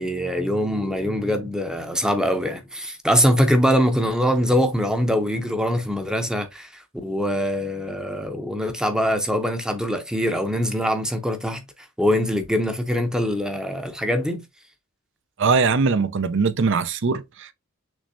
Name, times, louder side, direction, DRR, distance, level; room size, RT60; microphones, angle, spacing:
voice 1, 0.0-11.6 12.0-14.4, equal, 5° right, 0.6 m, -23 dB
voice 2, 15.4-17.5, right 4 dB, 60° right, 0.5 m, -21 dB
6.3 x 3.2 x 2.6 m
head